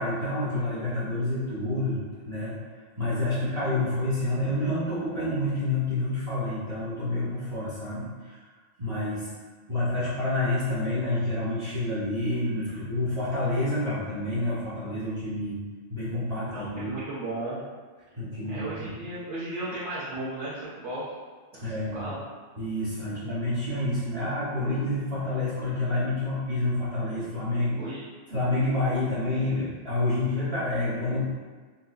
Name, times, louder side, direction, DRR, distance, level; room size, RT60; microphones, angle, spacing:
voice 1, 0.0-2.5 3.0-8.5 8.8-9.3 9.7-15.6 15.9-16.9 18.1-19.0 21.5-22.1 22.6-27.8 28.3-31.2, left 2 dB, 35° right, -11 dB, 0.7 m, -28 dB
voice 2, 16.5-17.6 18.4-21.0 21.5-21.6 21.9-22.2 23.1-23.2 27.7-28.0, right 1 dB, 65° right, -11 dB, 1.1 m, -35 dB
3.9 x 2.3 x 2.3 m, 1.4 s
omnidirectional pair, 1.3 m